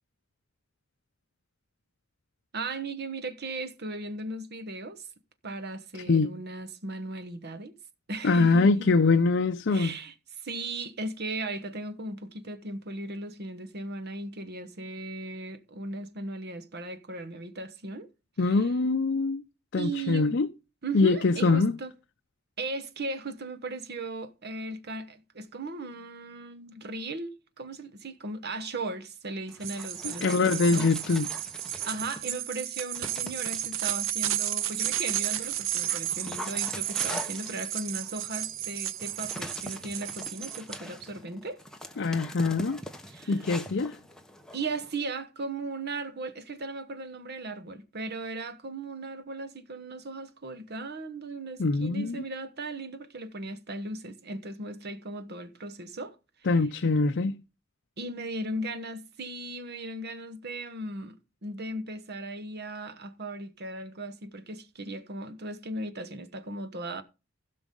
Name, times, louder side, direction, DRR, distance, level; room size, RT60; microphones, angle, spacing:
voice 1, 2.5-5.1 5.4-7.8 8.1-8.9 9.7-18.1 18.4-18.7 19.7-20.4 20.8-21.9 22.6-30.9 31.9-41.6 43.1-43.4 44.5-56.2 58.0-61.2 61.4-67.0, right 2 dB, 55° right, 1.1 m, -37 dB
voice 2, 8.2-9.9 18.4-19.4 19.7-20.5 20.9-21.7 30.0-31.3 42.0-42.8 43.3-44.0 51.6-52.3 56.5-57.4, left 3 dB, 60° left, 0.6 m, -24 dB
Dog, 29.5-32.4 32.9-34.0 34.6-45.0, left 1 dB, 5° left, 1.1 m, -43 dB
sound 1, 29.6-40.8, right 12 dB, 75° right, 0.7 m, -33 dB
16.0 x 6.0 x 3.8 m
head